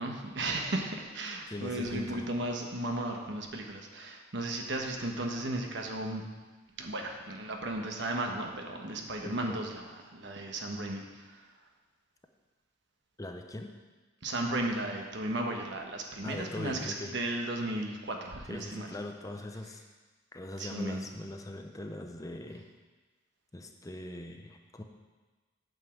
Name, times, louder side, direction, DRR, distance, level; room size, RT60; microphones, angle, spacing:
voice 1, 0.0-6.2 6.8-11.4 14.2-18.9 20.6-21.0, right 1 dB, 65° right, 2 dB, 1.2 m, -35 dB
voice 2, 1.5-2.3 9.2-9.6 13.2-13.7 16.2-17.2 18.5-19.8 20.3-22.7 23.5-24.8, left 1 dB, 20° left, 4 dB, 0.6 m, -41 dB
9.1 x 5.5 x 7.4 m, 1.3 s
head